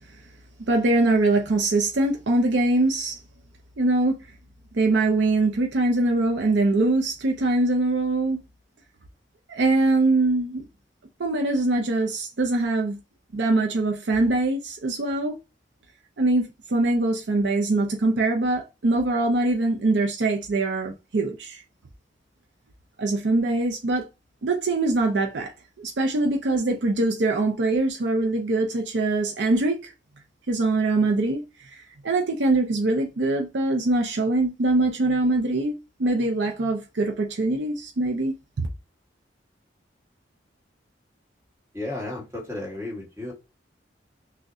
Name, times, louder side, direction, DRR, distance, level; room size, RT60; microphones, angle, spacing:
voice 1, 0.6-3.2 3.8-4.3 4.7-8.4 9.5-10.6 11.2-13.0 13.3-15.3 16.2-21.6 23.0-24.1 24.4-25.5 25.8-29.9 30.5-31.4 31.7-38.7, right 2 dB, 70° right, 0.5 m, -23 dB
voice 2, 41.7-43.3, left 2 dB, 15° right, 1.4 m, -33 dB
5.9 x 2.2 x 2.6 m
head